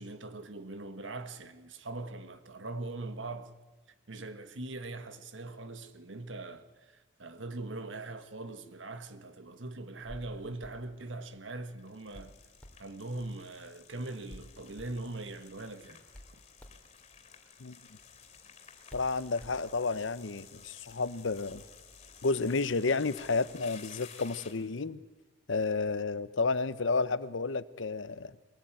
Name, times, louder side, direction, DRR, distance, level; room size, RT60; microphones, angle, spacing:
voice 1, 0.0-3.5 4.1-12.3 12.8-16.0, right 2 dB, 80° right, 1.5 m, -41 dB
Hands, 10.0-20.1, equal, 5° left, 2.9 m, -55 dB
sound 1, 11.8-24.8, left 6 dB, 35° left, 3.1 m, -54 dB
voice 2, 18.9-21.6 22.2-25.0 25.5-28.3, left 4 dB, 80° left, 0.8 m, -31 dB
22.5 x 19.0 x 9.0 m
head